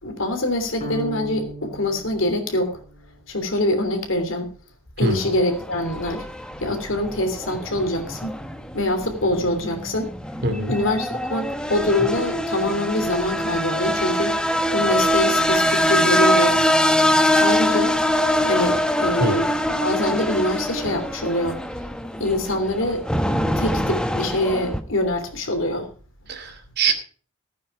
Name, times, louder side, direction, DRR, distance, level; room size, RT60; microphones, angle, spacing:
voice 1, 0.0-2.8 3.3-4.5 5.0-6.3 6.6-8.4 8.7-10.1 10.6-14.4 14.7-16.6 16.9-17.0 17.4-18.0 18.5-19.5 19.8-21.6 22.2-23.0 23.5-25.9, left 1 dB, 75° left, 3.2 m, -24 dB
sound 1, 0.8-3.1, equal, 35° left, 4.0 m, -35 dB
sound 2, 5.0-24.8, equal, 5° left, 1.0 m, -23 dB
voice 2, 10.4-10.7 19.2-19.3 26.3-26.9, right 3 dB, 55° right, 2.6 m, -23 dB
16.0 x 9.2 x 4.8 m
head